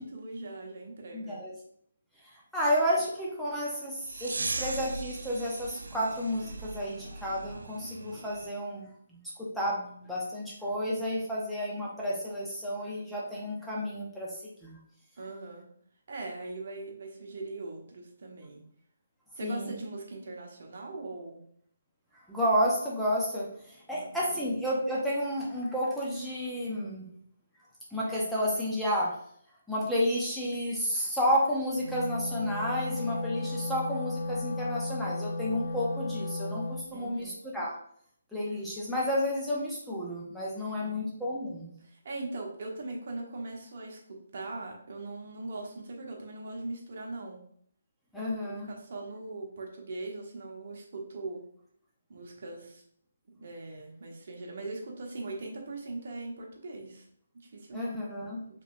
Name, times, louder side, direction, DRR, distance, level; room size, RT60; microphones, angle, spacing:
voice 1, 0.0-1.5 15.2-15.6 16.1-18.6 19.4-21.4 23.9-24.3 36.9-37.4 40.6-41.0 41.8-47.4 48.7-51.4 52.1-52.8 53.4-57.0 57.5-57.9, right 2 dB, 55° right, 0 dB, 1.1 m, -40 dB
voice 2, 1.1-1.5 2.5-14.3 14.6-14.8 19.4-19.7 22.3-27.1 27.9-29.1 29.7-37.7 38.3-41.7 48.1-48.7 57.7-58.4, equal, ahead, -7 dB, 0.8 m, -31 dB
sound 1, 4.0-8.5, right 3 dB, 80° right, 0.3 m, -39 dB
Wind instrument woodwind instrument, 31.7-36.9, left 2 dB, 75° left, 0.7 m, -34 dB
5.0 x 3.2 x 2.6 m, 0.64 s
hypercardioid pair, 155°, 0 cm